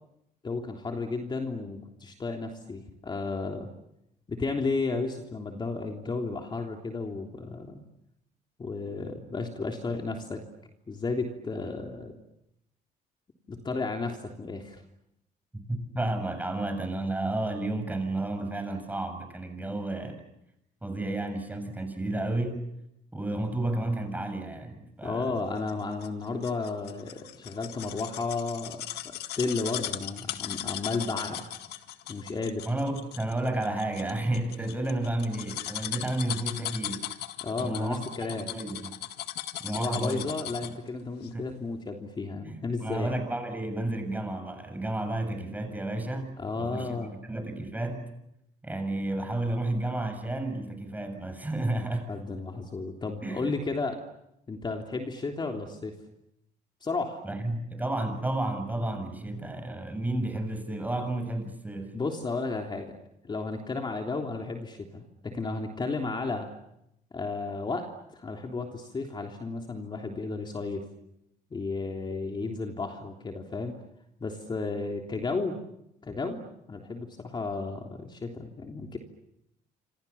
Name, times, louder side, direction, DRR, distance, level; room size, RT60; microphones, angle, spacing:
voice 1, 0.4-3.7 4.3-7.8 8.6-10.4 10.9-12.1 13.5-14.8 25.0-28.8 29.2-31.4 32.1-32.7 37.4-38.5 39.7-43.1 46.4-47.2 52.1-54.0 54.5-56.0 56.8-57.2 61.9-63.0 63.2-66.5 67.1-70.9 71.5-73.7 74.2-75.6 76.0-79.0, left 3 dB, 25° left, 2 dB, 3.3 m, -33 dB
voice 2, 15.7-20.2 20.8-22.6 23.1-25.3 32.7-37.1 37.6-38.9 39.6-40.3 40.6-40.7 41.3-41.5 42.4-46.3 46.6-48.0 48.6-52.1 53.2-53.6 57.2-62.0, right 2 dB, 10° right, 7 dB, 7.1 m, -32 dB
sound 1, 25.7-40.9 41.2-41.3, left 12 dB, 75° left, 1.8 m, -38 dB
28.0 x 27.0 x 7.1 m, 0.83 s
cardioid pair, 110°, 17 cm